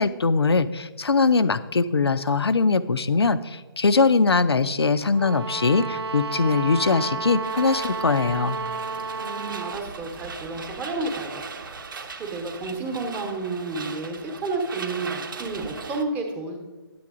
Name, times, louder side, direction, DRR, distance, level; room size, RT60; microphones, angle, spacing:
voice 1, 0.0-8.6, left 4 dB, 85° left, 14 dB, 0.5 m, -21 dB
sound 1, 5.1-9.9, right 4 dB, 90° right, 0.4 m, -31 dB
sound 2, 7.4-16.0, right 4 dB, 55° right, 0.8 m, -39 dB
voice 2, 9.2-16.6, right 3 dB, 15° right, 3 dB, 0.9 m, -31 dB
10.0 x 7.7 x 3.6 m, 1.3 s
figure-of-eight pair, 150°, 13 cm